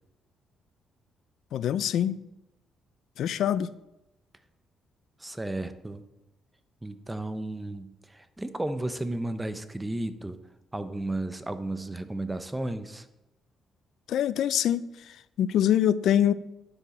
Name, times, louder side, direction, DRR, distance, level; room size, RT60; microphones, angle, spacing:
voice 1, 1.5-2.2 3.2-3.7 14.1-14.8 15.4-16.3, left 10 dB, 75° left, 17 dB, 0.4 m, -24 dB
voice 2, 5.2-6.0 6.8-10.4 10.7-13.1, right 1 dB, 10° right, 11 dB, 0.7 m, -33 dB
9.9 x 6.1 x 4.3 m, 0.91 s
cardioid pair, 90°, 0 cm